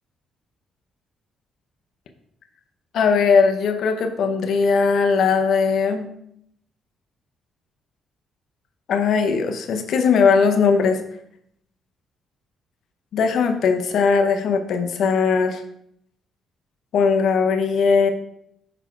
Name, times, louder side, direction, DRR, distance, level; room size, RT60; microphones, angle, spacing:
voice 1, 2.9-6.1 8.9-11.0 13.1-15.6 16.9-18.1, left 5 dB, 70° left, 6 dB, 0.7 m, -19 dB
5.7 x 4.2 x 4.5 m, 0.73 s
cardioid pair, 90°, 0 cm